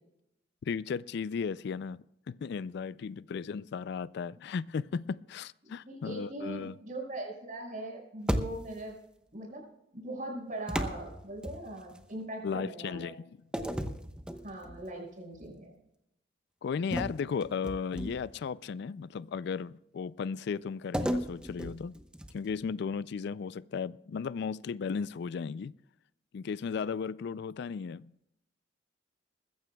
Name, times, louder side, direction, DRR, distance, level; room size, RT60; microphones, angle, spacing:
voice 1, 0.6-2.0 2.3-6.8 12.4-13.4 16.6-22.0 22.3-25.7 26.3-28.3, left 6 dB, 65° left, 0.3 m, -35 dB
voice 2, 5.6-9.0 9.3-9.6 9.9-13.1 14.4-15.7, right 1 dB, 45° right, 5.4 m, -40 dB
sound 1, 8.3-8.9 10.7-12.0 13.5-14.9 15.3-15.6 16.9-18.4 20.9-22.6, equal, 5° right, 0.9 m, -35 dB
21.0 x 15.0 x 2.3 m
head